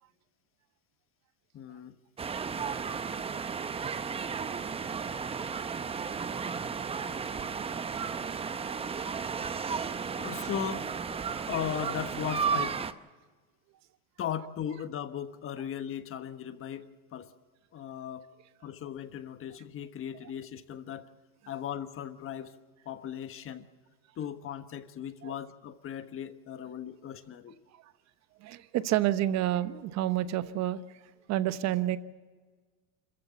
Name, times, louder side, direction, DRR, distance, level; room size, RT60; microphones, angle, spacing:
voice 1, 1.5-1.9 8.3-8.6 10.1-10.9 11.5-12.8 14.2-17.3 17.7-18.2 18.6-21.1 21.5-22.6 22.8-23.7 24.2-27.5, left 9 dB, 30° left, 10 dB, 1.3 m, -37 dB
sound 1, 2.2-12.9, right 6 dB, 15° right, 0.7 m, -34 dB
voice 2, 5.0-5.5 6.0-6.1 6.7-6.9 9.7-9.8 11.3-11.5 25.2-25.3 27.7-27.8 28.4-31.0 31.3-32.0, right 13 dB, 40° right, 13 dB, 1.1 m, -30 dB
26.0 x 14.5 x 7.1 m, 1.4 s
supercardioid pair, 125°, 42 cm